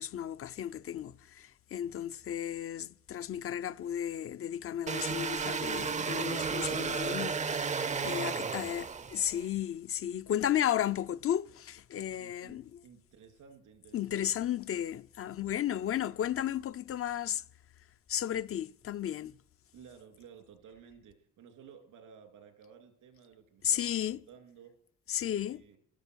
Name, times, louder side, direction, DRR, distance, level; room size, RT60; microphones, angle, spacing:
voice 1, 0.0-12.8 13.9-17.4 18.1-19.4 23.6-24.2 25.1-25.6, left 10 dB, 50° left, 0.5 m, -34 dB
sound 1, 4.9-9.4, right 5 dB, 25° right, 0.5 m, -33 dB
voice 2, 8.3-8.7 12.2-14.5 19.7-24.7 25.2-25.8, right 7 dB, 85° right, 2.8 m, -55 dB
13.5 x 13.0 x 6.2 m
cardioid pair, 90°, 30 cm